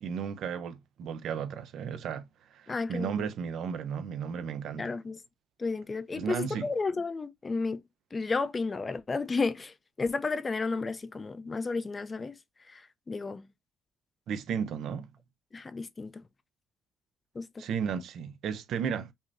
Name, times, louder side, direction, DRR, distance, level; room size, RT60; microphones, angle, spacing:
voice 1, 0.0-5.0 6.1-6.7 14.3-15.1 17.6-19.1, right 7 dB, 70° right, 0.6 m, -34 dB
voice 2, 2.7-3.3 4.8-5.2 5.6-7.8 8.1-12.4 12.7-13.5 15.5-16.2 17.3-17.6, left 4 dB, 30° left, 0.4 m, -32 dB
5.4 x 2.0 x 2.5 m
cardioid pair, 90°, 0 cm